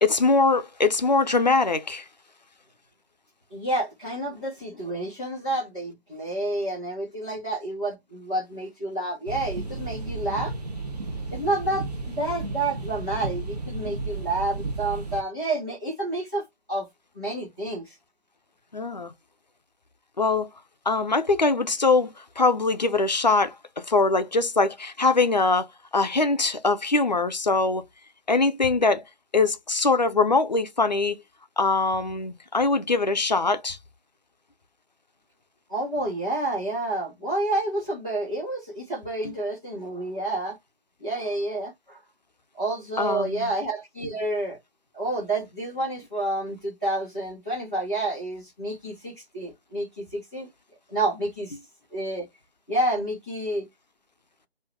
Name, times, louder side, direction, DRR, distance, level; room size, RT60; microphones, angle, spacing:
voice 1, 0.0-2.0 18.7-19.1 20.2-20.5 20.9-23.5 23.9-25.7 25.9-27.8 28.3-29.0 29.3-31.2 31.6-33.8 43.0-43.5, left 3 dB, 40° left, 0.6 m, -22 dB
voice 2, 3.5-10.6 11.3-16.9 17.1-17.9 35.7-40.6 41.0-42.0 42.6-44.6 44.9-50.5 50.9-51.6 51.9-52.2 52.7-53.6, right 2 dB, 5° right, 0.8 m, -29 dB
sound 1, 9.3-15.2, right 3 dB, 40° right, 0.9 m, -33 dB
5.0 x 2.8 x 3.4 m
figure-of-eight pair, 160°, 32 cm